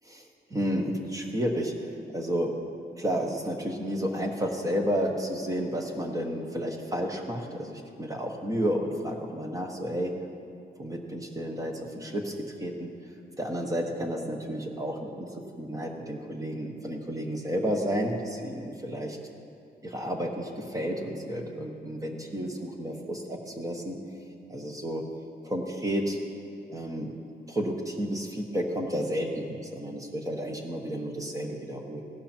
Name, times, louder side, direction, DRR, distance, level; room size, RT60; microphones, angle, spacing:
voice 1, 0.0-2.6 3.0-10.2 10.8-12.9 13.4-15.3 15.6-19.2 19.9-24.0 24.5-25.0 25.4-26.2 26.7-27.1 27.5-32.0, equal, 20° right, 3 dB, 1.2 m, -31 dB
16.5 x 11.5 x 4.5 m, 2.6 s
wide cardioid pair, 170°, 17 cm